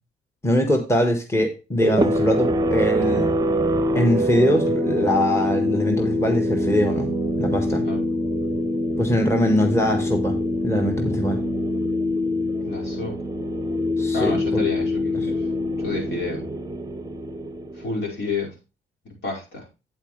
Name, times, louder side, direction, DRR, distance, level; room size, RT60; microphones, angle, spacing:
voice 1, 0.4-3.3 3.9-7.1 7.4-7.8 9.0-10.4 10.6-11.4 14.0-14.6, left 1 dB, 15° left, 4 dB, 1.6 m, -22 dB
sound 1, 1.8-18.1, equal, 20° right, 0.8 m, -24 dB
voice 2, 12.7-13.2 14.1-15.5 15.8-16.5 17.7-18.5 19.2-19.6, left 4 dB, 65° left, -2 dB, 5.4 m, -30 dB
8.8 x 8.1 x 3.3 m, 0.29 s
cardioid pair, 90°, 20 cm